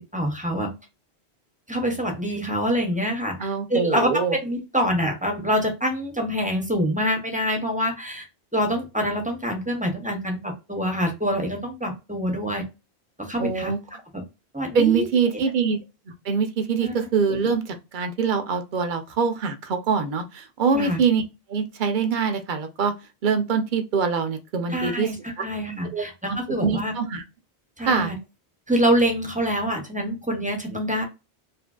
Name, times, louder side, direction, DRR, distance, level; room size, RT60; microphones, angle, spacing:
voice 1, 0.1-0.7 1.7-8.3 8.5-12.7 13.2-13.7 14.1-14.2 14.5-15.1 15.6-15.7 16.8-16.9 20.7-21.0 24.7-26.9 27.8-28.1 28.7-31.0, equal, 10° right, 0.6 m, -25 dB
voice 2, 3.4-4.4 13.4-13.8 14.7-15.8 16.2-21.2 21.5-22.9 23.2-25.1 25.9-27.2 27.8-28.2, right 5 dB, 55° right, 0.6 m, -24 dB
2.7 x 2.6 x 2.2 m
omnidirectional pair, 1.1 m